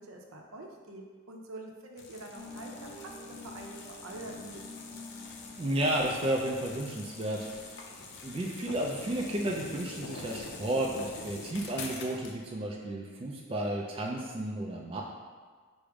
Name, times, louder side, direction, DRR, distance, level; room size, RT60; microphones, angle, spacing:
voice 1, 0.0-3.1 3.4-4.7, right 2 dB, 75° right, 1 dB, 0.6 m, -46 dB
sound 1, 2.0-12.4, left 3 dB, 55° left, 0.5 m, -45 dB
sound 2, 2.3-8.2, left 2 dB, 30° left, 1.3 m, -48 dB
voice 2, 5.6-7.4 8.2-15.0, right 1 dB, 25° right, -1 dB, 0.3 m, -32 dB
4.9 x 2.1 x 4.7 m, 1.5 s
head